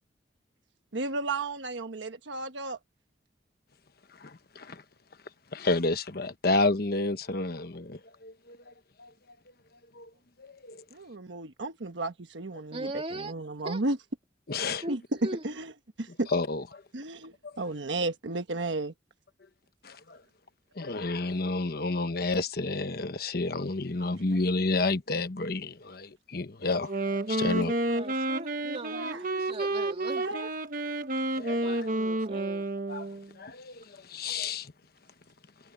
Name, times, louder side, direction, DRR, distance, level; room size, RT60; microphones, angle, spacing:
voice 1, 0.9-2.8 10.9-14.0 14.9-15.0 15.4-15.7 16.0-16.3 16.9-18.9 28.9-29.2 30.2-30.5, right 2 dB, 90° right, 1.2 m, -33 dB
voice 2, 4.2-4.8 5.5-8.7 9.0-9.1 9.9-10.1 10.4-10.8 14.5-14.8 16.3-16.8 17.4-17.5 19.8-20.2 20.8-27.7 31.4-31.9 32.9-33.1 33.4-34.7, left 3 dB, 55° left, 1.2 m, -30 dB
voice 3, 12.7-13.3 13.6-13.8 14.8-15.4 27.9-30.3 31.5-32.7, right 1 dB, 35° right, 3.3 m, -39 dB
Wind instrument woodwind instrument, 26.8-33.3, right 2 dB, 50° right, 1.3 m, -30 dB
head